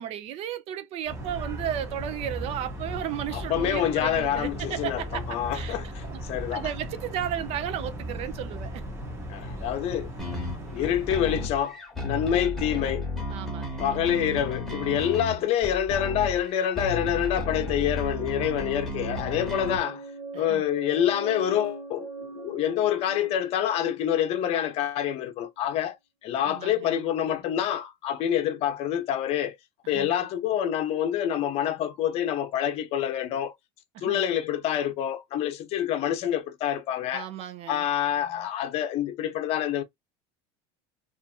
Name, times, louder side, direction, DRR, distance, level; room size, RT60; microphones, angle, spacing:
voice 1, 0.0-5.2 5.5-5.8 6.0-6.2 6.5-8.8 13.3-13.9 20.3-20.6 26.5-26.9 29.8-30.2 33.9-34.2 37.1-37.9, right 10 dB, 50° right, 0.5 m, -34 dB
sound 1, 1.1-11.5, equal, 20° right, 0.9 m, -37 dB
voice 2, 3.3-6.7 9.3-10.1 10.7-11.8 12.0-13.1 13.8-20.0 20.3-26.0 26.2-29.5 29.9-33.5 34.0-37.3 37.7-39.8, left 10 dB, 50° left, 0.6 m, -27 dB
sound 2, 10.2-19.8, left 1 dB, ahead, 1.1 m, -33 dB
sound 3, 19.0-24.8, right 3 dB, 90° right, 0.9 m, -41 dB
2.5 x 2.5 x 2.3 m
cardioid pair, 140°, 14 cm